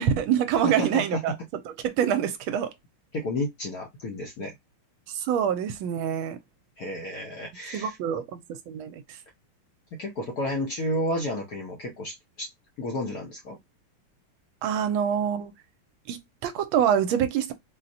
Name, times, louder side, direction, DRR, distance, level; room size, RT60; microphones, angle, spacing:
voice 1, 0.0-1.3 1.8-2.7 5.1-6.4 7.7-9.2 14.6-15.5 16.1-17.5, right 9 dB, 80° right, 1.4 m, -26 dB
voice 2, 0.6-1.4 3.1-4.5 6.8-8.2 9.9-12.5 12.8-13.6, left 1 dB, 70° left, 0.9 m, -31 dB
4.3 x 2.1 x 2.6 m
omnidirectional pair, 2.3 m